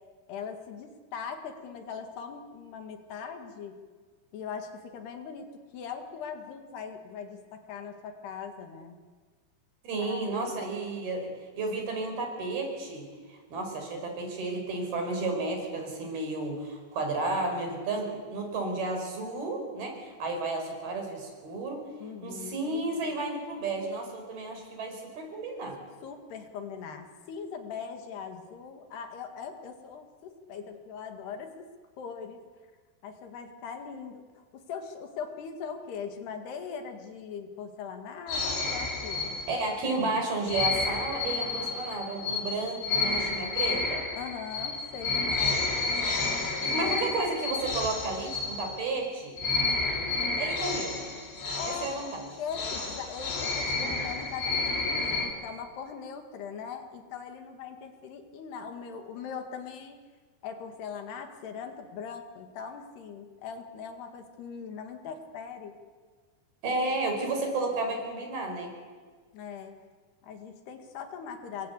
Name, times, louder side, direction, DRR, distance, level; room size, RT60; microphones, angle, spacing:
voice 1, 0.3-3.8 4.3-9.0 9.9-10.6 22.0-22.6 26.0-31.7 32.0-32.4 33.0-39.4 44.1-45.7 46.8-47.0 51.6-60.0 60.4-65.8 69.3-69.8 70.2-71.7, left 6 dB, 70° left, 5 dB, 3.9 m, -40 dB
voice 2, 9.8-11.3 11.6-21.8 22.2-25.8 39.5-44.0 46.6-49.4 49.9-51.1 51.6-52.1 66.6-68.7, right 2 dB, 60° right, 3 dB, 6.9 m, -32 dB
sound 1, 38.3-39.9 40.5-49.1 49.4-55.3, left 3 dB, 90° left, 5.9 m, -31 dB
27.0 x 23.0 x 8.3 m, 1.5 s
omnidirectional pair, 4.9 m